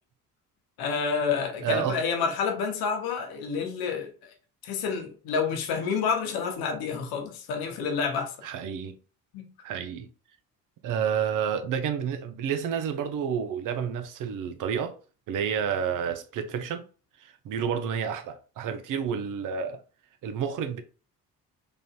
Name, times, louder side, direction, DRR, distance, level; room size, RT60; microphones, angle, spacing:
voice 1, 0.8-4.3 4.6-8.4 9.3-9.5, left 5 dB, 50° left, 0.9 m, -29 dB
voice 2, 1.6-2.0 8.4-9.0 9.6-10.1 10.8-15.0 15.3-16.8 17.2-19.8 20.2-20.8, right 7 dB, 40° right, 0.7 m, -30 dB
3.8 x 3.4 x 2.3 m
figure-of-eight pair, 50°, 48 cm